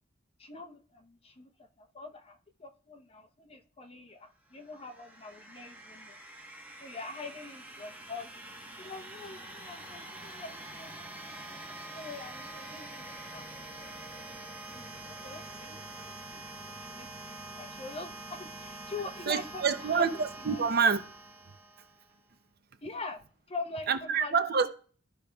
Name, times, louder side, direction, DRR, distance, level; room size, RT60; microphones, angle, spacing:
voice 1, 0.4-6.1 6.8-8.3 8.8-11.6 11.9-13.5 14.7-16.4 16.7-20.6 22.8-23.2 23.5-24.4, left 3 dB, 30° left, 0.8 m, -44 dB
sound 1, 4.5-22.2, right 2 dB, 10° right, 1.1 m, -45 dB
voice 2, 19.3-21.0 23.9-24.7, right 5 dB, 55° right, 0.6 m, -27 dB
13.5 x 5.0 x 2.3 m
head